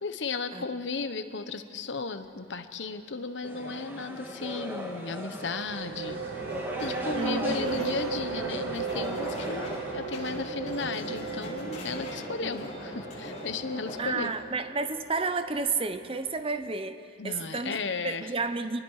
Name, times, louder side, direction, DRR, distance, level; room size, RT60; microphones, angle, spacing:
voice 1, 0.0-6.2 6.7-14.3 17.2-18.3, left 4 dB, 80° left, 10 dB, 1.0 m, -35 dB
sound 1, 3.4-9.9, equal, 10° right, 1.8 m, -38 dB
sound 2, 5.3-16.7, right 6 dB, 90° right, 0.7 m, -37 dB
sound 3, 6.0-14.3, left 1 dB, 40° left, 6.9 m, -41 dB
voice 2, 7.2-7.9 12.4-12.6 14.0-17.8 18.0-18.8, right 4 dB, 30° right, 10 dB, 0.8 m, -31 dB
27.0 x 20.5 x 4.9 m, 2.5 s
head